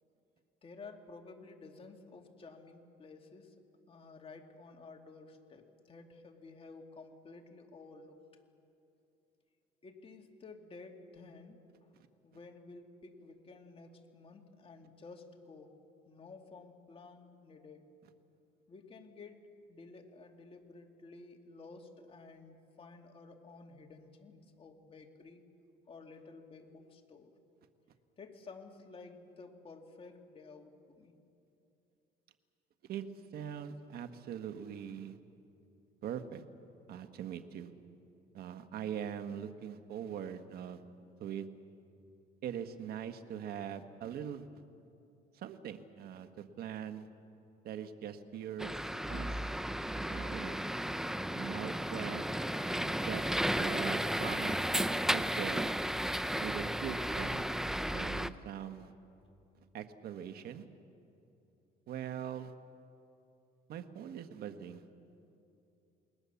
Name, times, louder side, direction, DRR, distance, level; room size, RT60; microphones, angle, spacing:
voice 1, 0.6-3.6 3.9-8.2 9.8-11.9 12.2-17.9 18.7-25.4 25.9-27.4 28.2-31.1, left 3 dB, 35° left, 3 dB, 2.6 m, -53 dB
voice 2, 33.3-35.2 36.0-36.4 36.9-37.7 38.3-40.8 41.2-41.5 42.4-44.5 45.3-47.1 47.6-48.8 49.1-49.3 50.1-50.6 51.3-52.3 52.8-53.3 53.5-55.7 56.4-57.5 57.9-58.9 59.7-60.6 61.9-62.5 63.7-64.8, right 9 dB, 65° right, 8 dB, 1.4 m, -42 dB
sound 1, 48.6-58.3, right 1 dB, 5° right, 0.6 m, -34 dB
28.5 x 20.5 x 7.1 m, 2.7 s
cardioid pair, 110°, 17 cm